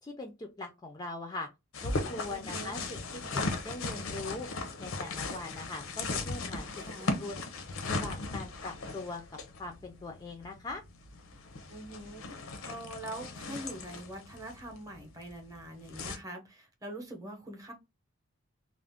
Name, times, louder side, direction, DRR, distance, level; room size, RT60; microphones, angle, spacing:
voice 1, 0.0-1.5 1.8-3.0 3.3-4.5 4.8-7.4 7.8-10.8, left 2 dB, 20° left, 0.4 m, -41 dB
sound 1, 1.7-16.2, left 3 dB, 80° left, 0.6 m, -37 dB
voice 2, 2.3-2.8 6.8-7.1 11.7-17.7, right 1 dB, 15° right, 0.7 m, -44 dB
2.4 x 2.0 x 3.4 m
head